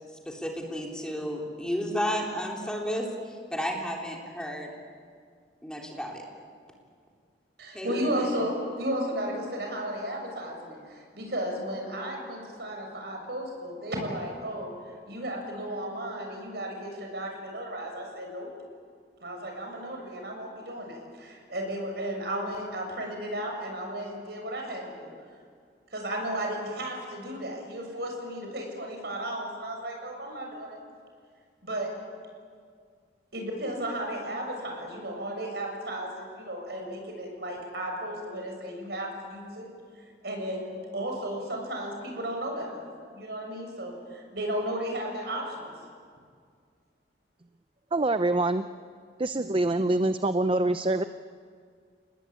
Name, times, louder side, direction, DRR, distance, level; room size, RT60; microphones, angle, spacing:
voice 1, 0.3-4.7 5.6-6.2 7.7-8.3, equal, 5° left, -1 dB, 3.6 m, -32 dB
voice 2, 7.6-14.7 15.1-18.5 19.2-25.1 25.9-30.8 31.6-31.9 33.3-39.7 40.2-42.8 43.1-45.7, right 1 dB, 65° right, 2 dB, 7.1 m, -34 dB
voice 3, 47.9-48.7 49.2-51.0, right 2 dB, 30° right, 10 dB, 0.6 m, -25 dB
30.0 x 20.0 x 8.8 m, 2.1 s
head